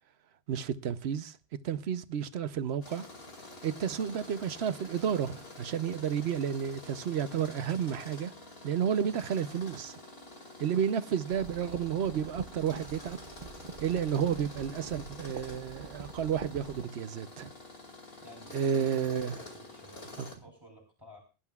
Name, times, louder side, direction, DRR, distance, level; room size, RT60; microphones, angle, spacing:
voice 1, 0.5-1.4 1.6-3.1 3.6-8.3 8.6-10.0 10.6-13.2 13.8-17.5 18.5-19.4, right 8 dB, 85° right, 1.0 m, -31 dB
Tools, 2.8-20.3, left 2 dB, 65° left, 2.6 m, -48 dB
sound 1, 11.3-16.8, right 6 dB, 55° right, 0.9 m, -46 dB
voice 2, 18.2-18.8 19.2-21.2, equal, 20° right, 3.3 m, -53 dB
23.0 x 11.5 x 2.4 m
omnidirectional pair, 1.1 m